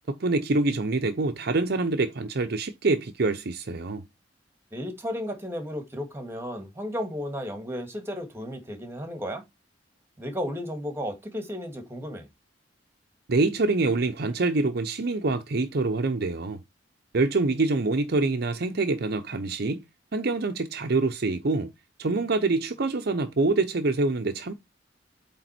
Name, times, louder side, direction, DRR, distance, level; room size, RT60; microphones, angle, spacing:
voice 1, 0.1-4.0 13.3-16.6 17.1-19.8 20.1-21.7 22.0-24.5, right 3 dB, 60° right, 0.7 m, -25 dB
voice 2, 4.7-9.4 10.2-12.3, equal, 15° right, 2.0 m, -34 dB
8.3 x 3.7 x 4.3 m
head